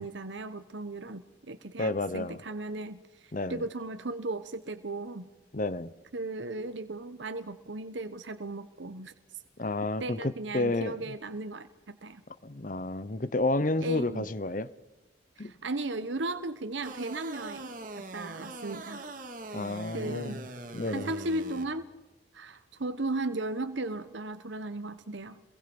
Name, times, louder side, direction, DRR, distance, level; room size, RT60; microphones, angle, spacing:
voice 1, 0.0-5.3 6.1-9.1 10.0-12.2 13.8-14.3 15.4-19.0 19.9-20.4 20.9-21.9 22.3-25.4, right 2 dB, 75° right, 1.0 m, -36 dB
voice 2, 1.8-2.4 3.3-3.6 5.5-5.9 9.6-11.1 12.4-14.7 15.4-15.5 19.5-20.4 20.7-21.1, left 2 dB, 45° left, 0.9 m, -31 dB
sound 1, 16.8-21.6, right 2 dB, 45° right, 2.2 m, -42 dB
28.0 x 22.5 x 5.4 m
head